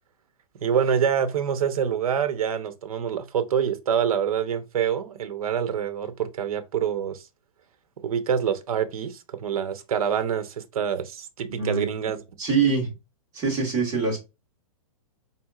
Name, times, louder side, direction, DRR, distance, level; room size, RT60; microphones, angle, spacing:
voice 1, 0.6-7.2 8.0-12.2, right 8 dB, 75° right, 0.7 m, -26 dB
voice 2, 12.4-12.9 13.3-14.2, right 5 dB, 15° right, 1.4 m, -24 dB
4.3 x 3.5 x 2.3 m
hypercardioid pair, 170°, 19 cm